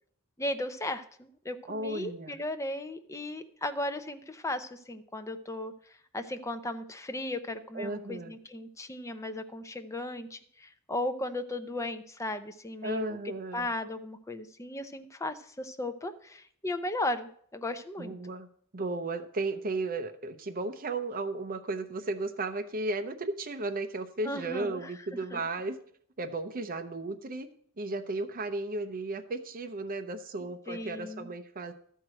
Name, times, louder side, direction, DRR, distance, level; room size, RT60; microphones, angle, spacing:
voice 1, 0.4-5.7 6.1-13.2 13.5-18.1 24.2-24.9 25.3-25.4 30.7-31.3, left 1 dB, 15° left, 8 dB, 0.6 m, -36 dB
voice 2, 1.7-2.4 7.7-8.3 12.8-13.7 18.0-18.5 18.7-25.8 26.2-27.5 27.8-31.7, right 2 dB, 40° right, 7 dB, 0.7 m, -34 dB
12.5 x 4.6 x 7.6 m, 0.62 s
head